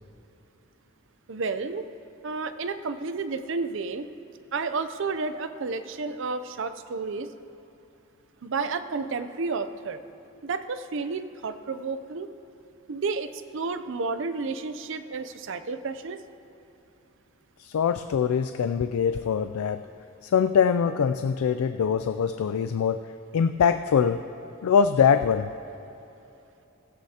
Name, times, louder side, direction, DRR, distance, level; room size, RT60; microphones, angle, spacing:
voice 1, 1.3-1.8 2.2-4.1 4.5-7.3 8.4-10.0 10.4-12.3 12.9-16.2, right 4 dB, 60° right, 11 dB, 0.5 m, -31 dB
voice 2, 17.6-19.9 20.2-23.0 23.3-24.2 24.6-25.5, left 7 dB, 90° left, 9 dB, 0.3 m, -23 dB
17.0 x 14.5 x 2.9 m, 2.9 s
head